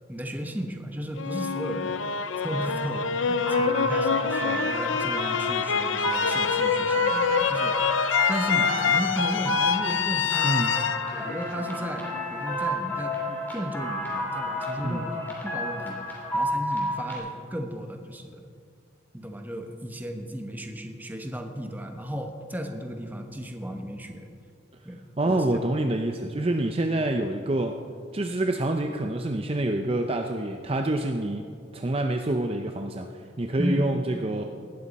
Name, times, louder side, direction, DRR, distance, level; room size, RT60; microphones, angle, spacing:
voice 1, 0.1-7.9 8.3-10.8 11.1-18.5 19.1-24.3 24.8-25.6 33.6-33.9, equal, 10° right, 4 dB, 1.0 m, -35 dB
sound 1, 1.2-12.2, left 6 dB, 85° left, 0.6 m, -26 dB
sound 2, 3.4-17.2, equal, 10° left, 2.9 m, -31 dB
voice 2, 10.4-10.8 14.8-15.0 25.2-27.8 28.1-31.5 31.7-33.1 33.4-34.4, right 1 dB, 30° right, 4 dB, 0.6 m, -27 dB
18.5 x 13.0 x 4.2 m, 2.3 s
head